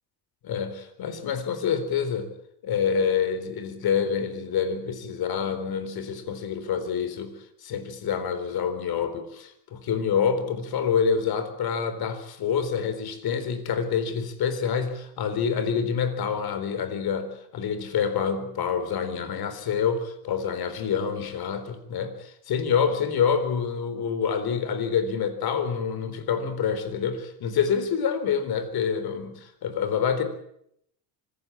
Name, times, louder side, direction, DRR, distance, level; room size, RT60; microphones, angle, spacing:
voice 1, 0.4-2.3 2.6-22.1 22.5-30.2, left 7 dB, 60° left, 11 dB, 4.1 m, -27 dB
25.5 x 15.0 x 8.8 m, 0.73 s
cardioid pair, 140°, 42 cm